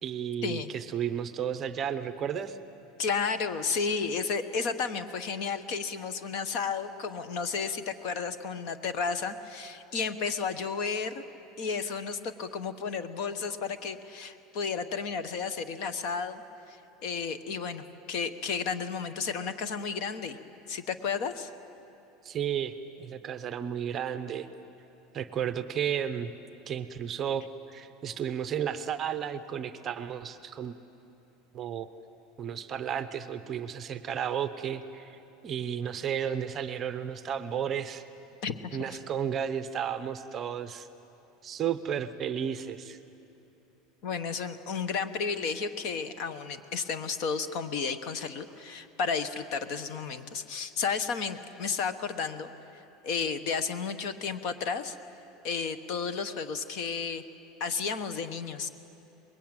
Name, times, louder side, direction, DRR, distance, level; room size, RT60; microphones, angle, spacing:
voice 1, 0.0-2.6 22.2-24.5 25.1-26.3 26.7-27.4 27.7-30.8 31.5-31.9 32.4-35.2 35.4-38.0 38.7-40.9 41.4-43.0, right 8 dB, 25° right, 11 dB, 0.7 m, -33 dB
voice 2, 3.0-11.2 11.6-16.4 16.7-20.4 20.7-21.5 38.4-39.0 44.0-52.5 53.0-55.0 55.4-57.2 57.6-58.7, left 5 dB, 45° left, 11 dB, 1.1 m, -32 dB
24.0 x 21.5 x 8.9 m, 2.9 s
cardioid pair, 175°, 0 cm